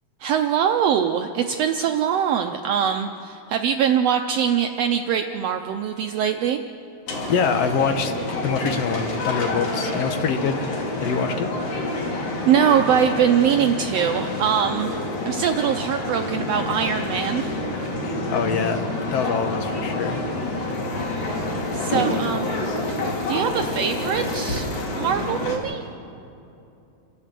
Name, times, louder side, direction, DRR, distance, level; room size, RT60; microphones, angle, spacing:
voice 1, 0.2-6.6 12.5-14.9 15.2-17.5 21.7-22.5 23.3-24.6 25.0-25.8, right 8 dB, 75° right, 5 dB, 1.6 m, -22 dB
sound 1, 7.1-25.6, left 2 dB, 85° left, 4.3 m, -28 dB
voice 2, 7.3-10.6 11.0-11.5 18.0-18.8 19.1-20.3, left 6 dB, 65° left, 7 dB, 1.9 m, -25 dB
29.0 x 12.5 x 7.6 m, 2.7 s
omnidirectional pair, 3.4 m